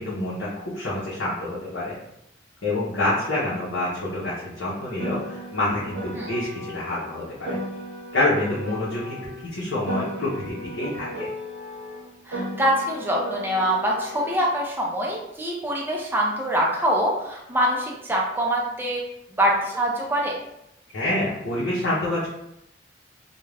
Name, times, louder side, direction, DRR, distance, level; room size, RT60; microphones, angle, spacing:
voice 1, 0.0-2.0 2.6-7.6 8.1-9.2 9.5-11.3 20.9-22.3, left 1 dB, 75° left, -8 dB, 0.7 m, -27 dB
Piano, 5.0-9.5 9.9-14.5, equal, 80° right, 0.8 m, -35 dB
voice 2, 12.2-19.0 19.3-20.4, equal, 10° right, -2 dB, 0.4 m, -24 dB
2.4 x 2.1 x 3.2 m, 0.82 s
head